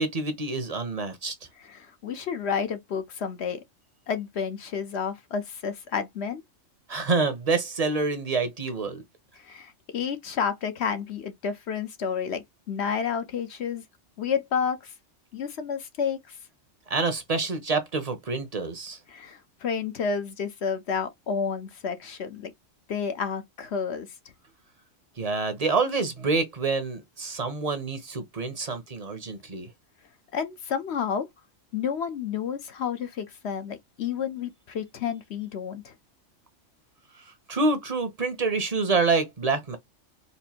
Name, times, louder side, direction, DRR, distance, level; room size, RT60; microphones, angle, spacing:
voice 1, 0.0-1.3 6.9-9.0 16.9-19.0 25.2-29.7 37.5-39.8, right 3 dB, 35° right, 0.8 m, -27 dB
voice 2, 1.6-3.6 4.1-6.4 9.4-13.8 14.2-14.9 15.3-16.4 19.1-22.5 22.9-24.1 30.3-31.3 31.7-35.9, left 6 dB, 60° left, 0.9 m, -30 dB
4.2 x 2.6 x 2.8 m
omnidirectional pair, 1.3 m